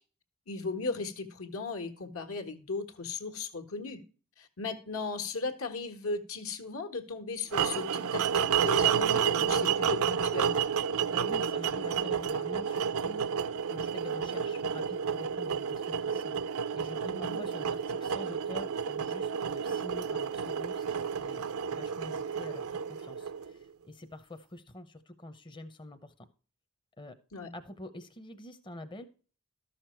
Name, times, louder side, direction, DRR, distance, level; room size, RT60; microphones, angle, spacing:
voice 1, 0.5-4.0 4.4-10.6 17.1-17.4 27.3-27.5, left 3 dB, 70° left, 7 dB, 1.6 m, -37 dB
sound 1, 7.5-23.6, right 7 dB, 80° right, 0.6 m, -30 dB
voice 2, 11.1-21.4 21.7-26.3 27.0-27.2 27.5-29.1, left 1 dB, 20° left, 7 dB, 0.7 m, -47 dB
13.0 x 6.5 x 4.5 m, 0.38 s
head